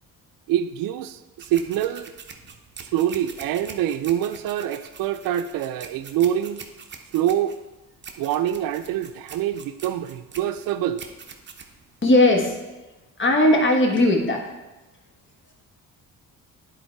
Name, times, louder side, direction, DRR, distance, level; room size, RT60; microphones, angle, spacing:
voice 1, 0.5-2.1 2.8-6.7 7.1-7.6 8.2-11.0, right 11 dB, 80° right, 9 dB, 0.5 m, -25 dB
sound 1, 1.4-12.5, right 5 dB, 30° right, 0.8 m, -43 dB
voice 2, 12.0-12.6 13.2-14.4, left 1 dB, 35° left, 1 dB, 1.5 m, -18 dB
9.9 x 4.0 x 4.5 m, 1.1 s
cardioid pair, 100°, 34 cm